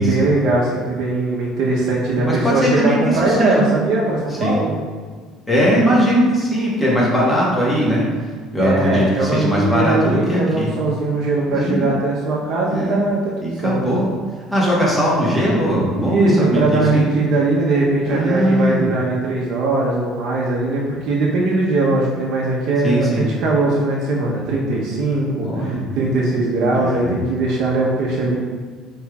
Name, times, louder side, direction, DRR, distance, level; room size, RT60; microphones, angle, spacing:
voice 1, 0.0-4.7 8.6-13.8 16.0-28.4, right 2 dB, 65° right, -4 dB, 0.7 m, -20 dB
voice 2, 2.1-3.8 4.4-4.6 5.5-8.0 8.5-10.7 11.5-11.9 12.7-13.0 13.4-14.1 14.5-17.1 18.0-18.9 22.8-23.3 25.4-25.8 26.7-27.1, equal, 10° left, -5 dB, 1.1 m, -19 dB
5.6 x 3.3 x 2.3 m, 1.5 s
cardioid pair, 130°, 0 cm